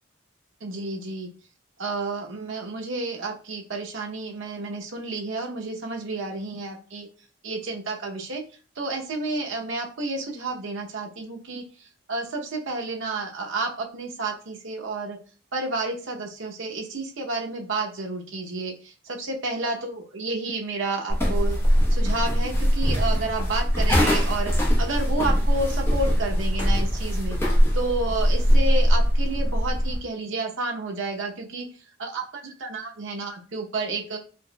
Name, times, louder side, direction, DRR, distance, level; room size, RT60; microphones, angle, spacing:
voice 1, 0.6-1.3 1.8-7.1 7.4-8.4 8.8-11.6 12.1-15.2 15.5-21.6 21.9-31.7 32.0-34.2, right 3 dB, 70° right, 2 dB, 0.7 m, -31 dB
sound 1, 21.1-30.0, equal, 10° left, 0.8 m, -21 dB
4.2 x 2.8 x 2.2 m, 0.37 s
head